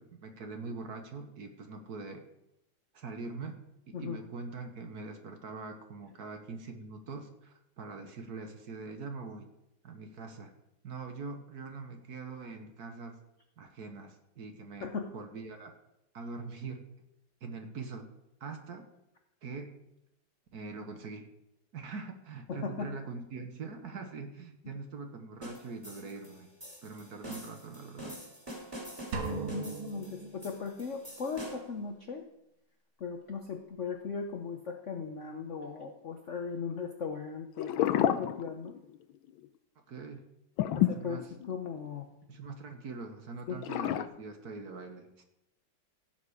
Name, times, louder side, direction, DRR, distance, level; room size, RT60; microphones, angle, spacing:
voice 1, 0.0-2.2 2.9-3.6 3.9-9.5 9.8-10.5 10.8-13.2 13.6-15.7 16.1-16.8 17.4-18.1 18.4-18.9 19.4-19.8 20.5-21.3 21.7-26.5 26.8-28.2 29.6-29.8 39.9-40.2 40.7-41.3 42.3-45.2, right 4 dB, 55° right, 6 dB, 1.5 m, -43 dB
voice 2, 14.8-15.1 22.5-22.9 29.3-32.2 33.0-38.7 40.7-42.1 43.5-43.6, left 5 dB, 60° left, 5 dB, 0.8 m, -38 dB
sound 1, 25.4-31.8, equal, 10° right, 2.9 m, -46 dB
sound 2, 29.1-31.2, right 4 dB, 85° right, 2.3 m, -38 dB
sound 3, 37.6-39.0 39.3-39.5 40.6-41.9 43.6-44.1, left 12 dB, 80° left, 1.4 m, -29 dB
16.0 x 7.3 x 4.9 m, 0.85 s
omnidirectional pair, 2.2 m